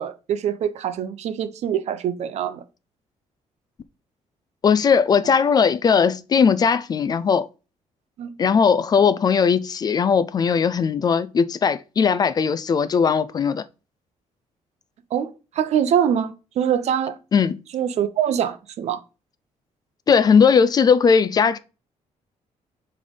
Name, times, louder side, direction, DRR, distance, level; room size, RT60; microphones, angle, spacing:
voice 1, 0.0-2.6 8.2-8.3 15.1-17.2 17.7-19.0, right 9 dB, 65° right, 0.8 m, -24 dB
voice 2, 4.6-7.5 8.4-13.6 17.3-17.6 20.1-21.6, left 6 dB, 30° left, 0.4 m, -18 dB
6.3 x 3.3 x 5.3 m
cardioid pair, 160°, 12 cm